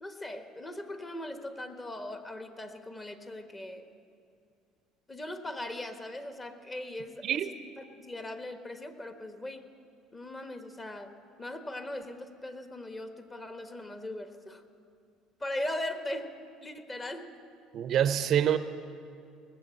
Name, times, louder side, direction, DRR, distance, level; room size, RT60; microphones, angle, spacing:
voice 1, 0.0-3.9 5.1-9.7 10.1-11.1 11.4-14.6 15.4-16.3 16.6-17.3, left 1 dB, 25° left, 7 dB, 1.3 m, -39 dB
voice 2, 17.7-18.6, right 10 dB, 50° right, 13 dB, 0.5 m, -26 dB
19.0 x 7.6 x 7.8 m, 2.3 s
hypercardioid pair, 60°, 0 cm